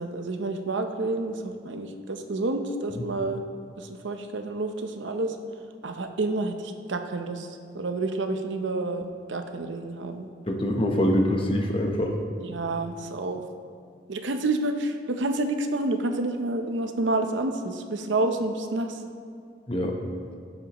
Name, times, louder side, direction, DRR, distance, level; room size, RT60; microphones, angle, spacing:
voice 1, 0.0-3.4 3.8-5.4 5.8-10.3 12.4-13.4 14.1-19.0, right 2 dB, 80° right, 6 dB, 0.7 m, -29 dB
voice 2, 10.5-12.1 19.7-20.0, equal, 30° left, 2 dB, 0.9 m, -24 dB
16.0 x 7.4 x 3.0 m, 2.2 s
head